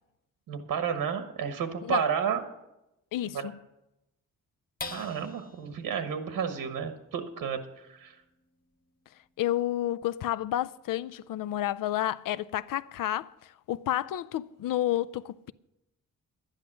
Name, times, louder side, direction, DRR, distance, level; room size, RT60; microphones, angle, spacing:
voice 1, 0.5-2.4 3.3-3.5 4.9-8.2, right 7 dB, 90° right, 1.2 m, -31 dB
voice 2, 3.1-3.5 9.4-15.5, left 13 dB, 80° left, 0.5 m, -30 dB
sound 1, 4.8-11.5 12.0-12.1 12.5-13.0, left 3 dB, 25° left, 1.0 m, -48 dB
11.5 x 10.5 x 6.2 m
wide cardioid pair, 145°, 33 cm